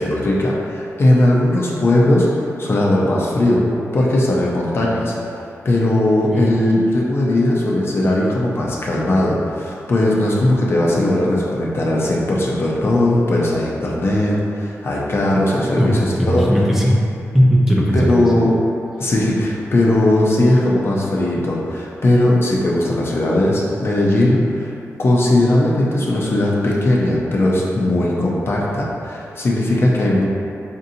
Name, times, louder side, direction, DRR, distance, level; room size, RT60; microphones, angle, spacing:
voice 1, 0.0-3.6 3.9-16.5 17.9-18.5 19.0-24.7 25.0-30.3, left 1 dB, 50° left, -4 dB, 0.6 m, -18 dB
voice 2, 16.2-17.0 17.3-18.1, equal, 5° right, -5 dB, 0.6 m, -16 dB
5.2 x 2.6 x 2.7 m, 2.6 s
wide cardioid pair, 110°, 5 cm